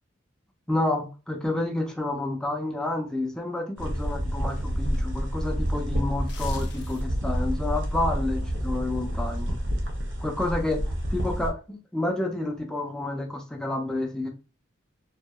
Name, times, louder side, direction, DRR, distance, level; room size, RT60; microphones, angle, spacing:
voice 1, 0.7-9.6 10.2-10.8 11.1-14.3, left 2 dB, 5° left, 0 dB, 0.3 m, -29 dB
sound 1, 3.8-11.5, equal, 60° right, 0.6 m, -29 dB
sound 2, 6.1-7.3 7.7-7.9, left 5 dB, 60° left, 0.5 m, -45 dB
2.8 x 2.1 x 2.2 m, 0.33 s
head